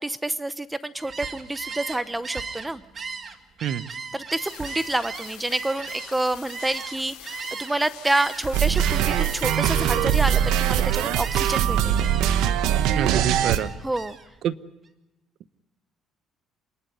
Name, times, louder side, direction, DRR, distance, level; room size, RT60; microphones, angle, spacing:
voice 1, 0.0-2.8 4.1-12.0 13.8-14.2, right 2 dB, 10° right, 14 dB, 0.7 m, -28 dB
Gull seagull, 1.0-7.7 8.0-10.8 11.2-11.6 11.9-12.4 12.8-14.3, right 5 dB, 35° right, 1.8 m, -37 dB
sound 1, 4.4-9.8, left 11 dB, 90° left, 3.8 m, -44 dB
sound 2, 8.5-13.6, right 10 dB, 80° right, 1.1 m, -22 dB
voice 2, 12.9-13.7 14.4-14.6, right 10 dB, 65° right, 15 dB, 0.8 m, -26 dB
27.0 x 11.5 x 9.6 m, 1.0 s
cardioid pair, 100°, 0 cm